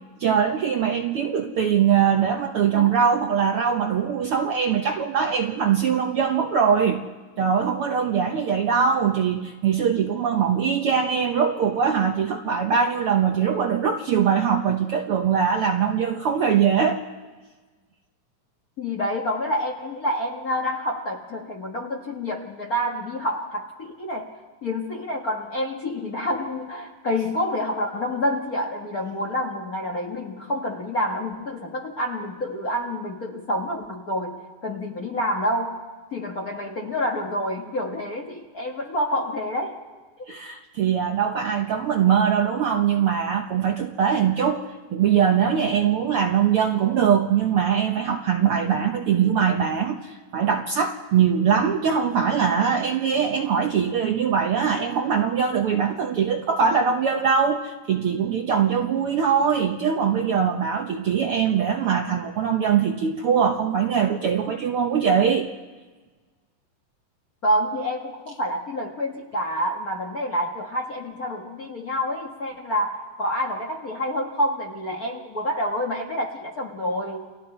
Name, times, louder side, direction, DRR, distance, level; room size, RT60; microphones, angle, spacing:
voice 1, 0.2-7.0 7.4-17.0 40.3-44.6 44.9-65.5, right 7 dB, 80° right, 3 dB, 1.3 m, -22 dB
voice 2, 18.8-24.4 24.6-35.8 36.1-39.8 67.4-77.3, equal, 55° left, 1 dB, 1.0 m, -28 dB
30.0 x 23.5 x 4.4 m, 1.3 s
omnidirectional pair, 3.8 m